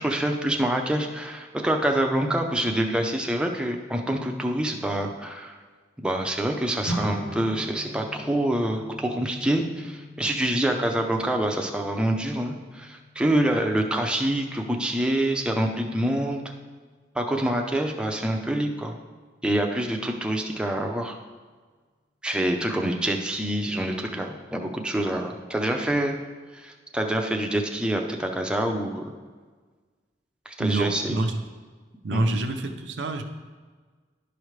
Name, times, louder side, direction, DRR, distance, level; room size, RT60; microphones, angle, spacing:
voice 1, 0.0-5.6 6.0-16.4 17.1-19.0 19.4-21.2 22.2-26.2 26.5-29.1 30.5-31.2 32.1-32.4, right 1 dB, 5° right, 2 dB, 0.6 m, -26 dB
sound 1, 6.8-16.3, equal, 70° left, 1.1 m, -40 dB
voice 2, 30.6-31.4 32.0-33.2, right 2 dB, 85° right, 4 dB, 0.6 m, -27 dB
11.5 x 5.1 x 3.2 m, 1.5 s
head